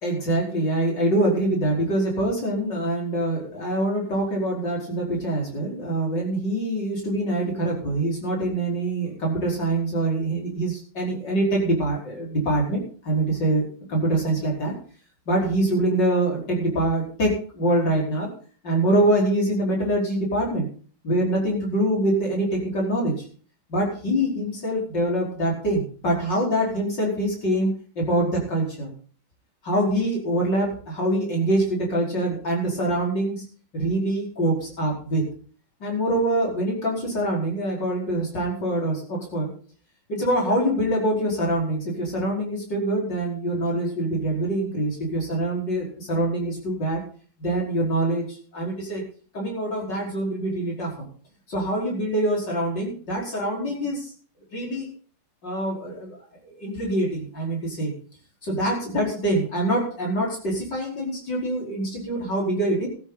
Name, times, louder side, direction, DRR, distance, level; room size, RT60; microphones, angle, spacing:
voice 1, 0.0-13.6 13.9-14.7 15.3-18.3 18.6-20.7 21.0-23.1 23.7-27.7 28.0-28.9 29.6-33.4 33.7-35.2 35.8-39.5 40.1-47.0 47.4-49.0 49.3-51.1 51.5-54.1 54.5-54.9 55.4-56.2 56.4-57.9 58.4-62.9, right 1 dB, 60° left, -1 dB, 5.5 m, -24 dB
15.5 x 12.5 x 4.1 m, 0.42 s
omnidirectional pair, 2.2 m